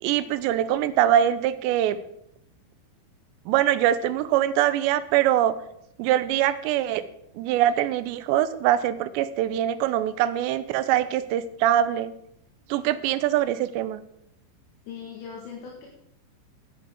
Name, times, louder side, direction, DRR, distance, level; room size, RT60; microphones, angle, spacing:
voice 1, 0.0-2.0 3.5-5.6 6.0-7.0 7.4-12.1 12.7-14.0, right 11 dB, 85° right, 13 dB, 2.8 m, -23 dB
voice 2, 14.9-15.9, left 6 dB, 75° left, -2 dB, 3.9 m, -39 dB
11.0 x 8.4 x 6.3 m, 0.75 s
omnidirectional pair, 5.1 m